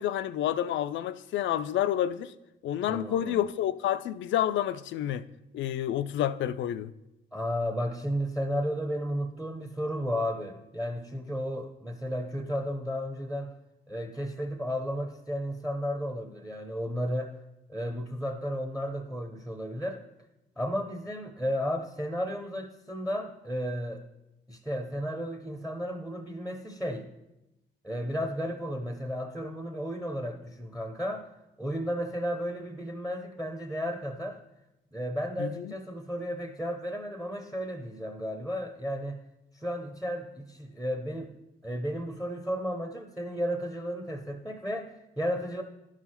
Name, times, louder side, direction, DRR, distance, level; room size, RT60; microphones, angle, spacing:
voice 1, 0.0-2.3 2.6-5.2 5.5-6.9 35.4-35.7, left 11 dB, 70° left, 0.4 m, -29 dB
voice 2, 2.9-3.4 7.3-13.5 13.9-17.3 17.7-20.0 20.6-24.0 24.5-27.1 27.8-31.3 31.6-34.4 34.9-39.2 39.5-41.3 41.6-45.6, equal, 5° right, 0.8 m, -33 dB
11.0 x 4.8 x 5.6 m
cardioid pair, 90°, 20 cm